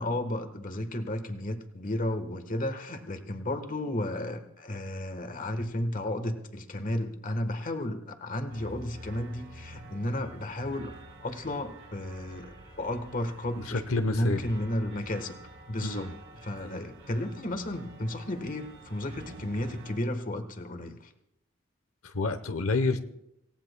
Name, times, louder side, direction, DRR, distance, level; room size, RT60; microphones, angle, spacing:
voice 1, 0.0-10.9 11.2-13.8 14.1-15.4 15.7-16.1 16.4-21.0, left 1 dB, 40° left, 8 dB, 1.3 m, -33 dB
sound 1, 8.5-20.0, right 1 dB, 60° right, 3.5 m, -48 dB
voice 2, 13.6-14.5 15.8-16.1 16.6-16.8 22.0-23.0, left 3 dB, 85° left, 9 dB, 0.9 m, -29 dB
27.0 x 17.0 x 2.2 m, 0.84 s
head